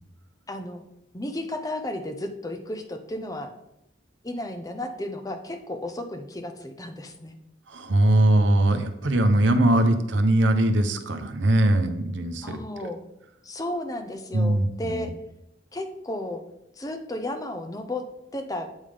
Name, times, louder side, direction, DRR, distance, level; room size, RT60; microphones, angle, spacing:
voice 1, 0.5-0.8 1.1-3.5 4.2-7.4 12.4-13.0 13.4-15.1 15.7-16.4 16.8-18.0 18.3-18.7, left 1 dB, 20° left, 6 dB, 0.7 m, -33 dB
voice 2, 7.7-12.6 14.3-15.1, right 1 dB, 80° right, 8 dB, 0.8 m, -21 dB
8.2 x 3.7 x 5.0 m, 0.86 s
head